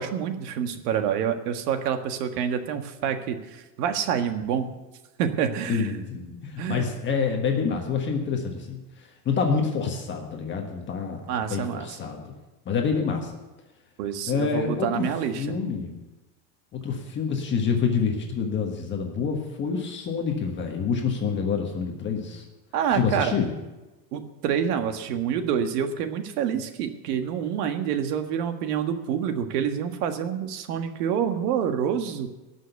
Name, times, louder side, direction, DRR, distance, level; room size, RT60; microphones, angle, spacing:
voice 1, 0.0-4.7 5.2-5.9 6.6-6.8 11.3-12.0 14.0-15.5 22.7-23.3 24.1-32.3, right 8 dB, 70° right, 7 dB, 1.7 m, -27 dB
voice 2, 5.7-8.8 9.2-11.2 11.5-12.4 12.6-13.3 14.3-16.0 16.7-22.4 22.9-23.5, left 5 dB, 25° left, 2 dB, 1.5 m, -27 dB
18.0 x 6.4 x 8.0 m, 1.1 s
supercardioid pair, 165°, 48 cm